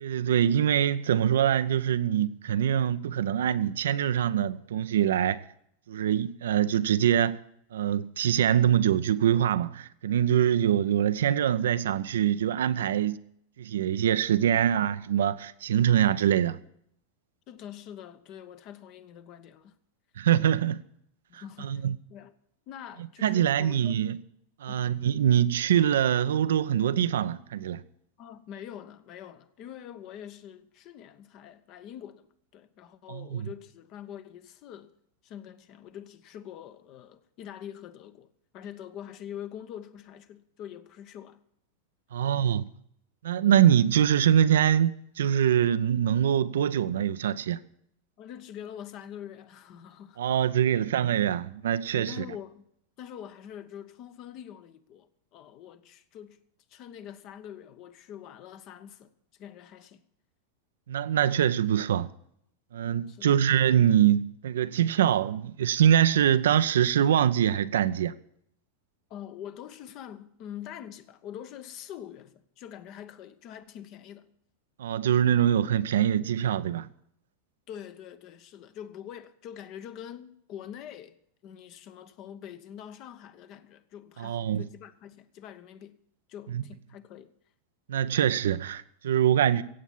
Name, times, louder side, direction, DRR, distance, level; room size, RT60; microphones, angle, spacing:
voice 1, 0.0-5.4 5.9-7.4 7.7-13.2 13.6-16.6 20.2-20.8 21.3-22.0 23.2-24.2 24.6-27.8 33.1-33.5 42.1-42.6 43.2-47.6 50.2-52.2 60.9-62.1 62.7-68.1 74.8-76.9 84.2-84.7 86.5-86.6 87.9-89.6, right 10 dB, 60° right, 0.5 m, -24 dB
voice 2, 17.5-19.7 21.3-21.8 22.1-22.3 22.7-24.0 24.7-24.9 28.2-32.3 32.5-34.9 35.2-41.4 48.2-50.2 51.9-52.7 53.0-56.4 56.7-59.1 59.4-60.0 63.1-63.4 69.1-74.3 77.7-81.2 81.4-86.0 86.3-87.3, left 10 dB, 40° left, 1.0 m, -44 dB
16.0 x 8.2 x 7.2 m
figure-of-eight pair, 90°, 0 cm